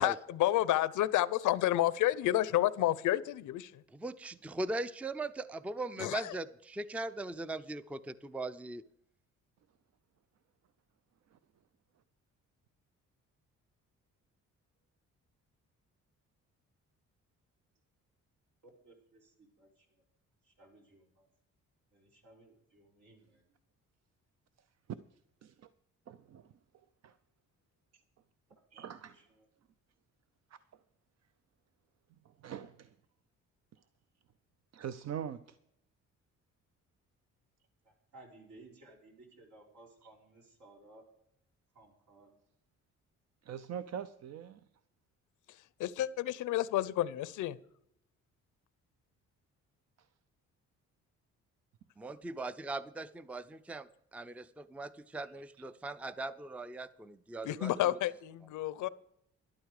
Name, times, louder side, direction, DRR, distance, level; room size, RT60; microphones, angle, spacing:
voice 1, 0.0-3.8 6.0-6.4 45.8-47.6 57.4-58.9, left 14 dB, 80° left, 18 dB, 0.6 m, -30 dB
voice 2, 3.9-8.8 52.0-57.7, right 2 dB, 5° right, 15 dB, 0.4 m, -40 dB
voice 3, 18.8-20.0 20.4-21.3 21.9-23.5 28.7-29.7 37.8-41.0 41.7-42.3 43.9-44.1, right 2 dB, 80° right, -1 dB, 4.4 m, -59 dB
voice 4, 26.1-26.4 27.0-27.1 28.7-29.2 32.4-32.9 34.7-35.4 43.5-44.6, right 8 dB, 60° right, 12 dB, 0.7 m, -42 dB
13.0 x 11.5 x 4.9 m, 0.75 s
cardioid pair, 90°, 30 cm